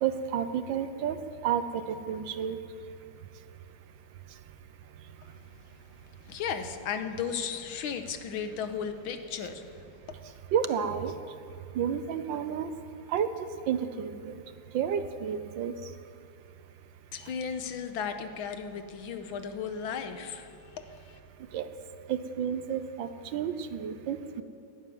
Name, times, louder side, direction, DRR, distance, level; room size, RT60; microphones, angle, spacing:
voice 1, 0.0-2.6 10.5-11.1 11.7-12.7 13.1-13.3 13.7-14.4 14.7-15.7 21.5-21.7 22.1-24.4, right 8 dB, 75° right, 11 dB, 1.4 m, -31 dB
voice 2, 6.0-10.3 17.1-21.2, left 7 dB, 90° left, 8 dB, 1.8 m, -36 dB
12.0 x 11.5 x 9.3 m, 2.5 s
omnidirectional pair, 2.2 m